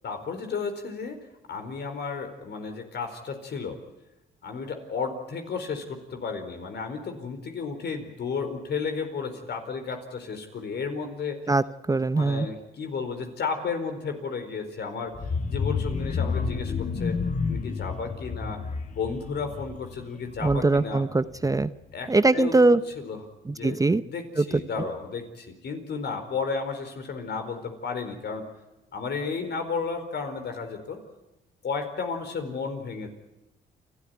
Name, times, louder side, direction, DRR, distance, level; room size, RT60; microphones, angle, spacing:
voice 1, 0.0-1.2 1.5-3.8 4.4-11.4 12.1-15.2 15.5-17.2 17.5-18.6 18.9-21.0 21.9-23.2 23.5-28.5 28.9-31.0 31.6-33.1, left 5 dB, 60° left, 6 dB, 4.6 m, -33 dB
voice 2, 11.5-12.5 20.4-21.7 22.1-22.8 23.5-24.0 24.4-24.5 24.8-24.9, right 3 dB, 20° right, 14 dB, 0.7 m, -22 dB
sound 1, 15.1-20.9 21.3-21.6 21.9-22.0, left 5 dB, 40° left, 1.6 m, -30 dB
28.5 x 13.0 x 9.6 m, 1.0 s
cardioid pair, 70°, 19 cm